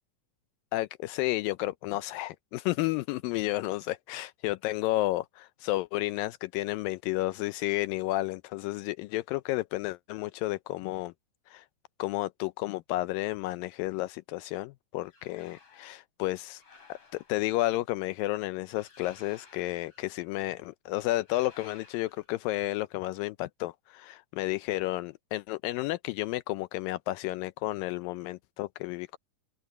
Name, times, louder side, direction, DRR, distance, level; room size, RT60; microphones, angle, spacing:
voice 1, 0.7-11.1 11.5-11.7 12.0-16.6 16.9-29.2, left 17 dB, 85° left, 2.3 m, -32 dB
sound 1, 15.0-16.0 16.6-17.6 18.7-20.3 21.2-22.4, left 4 dB, 40° left, 5.1 m, -56 dB
omnidirectional pair, 4.0 m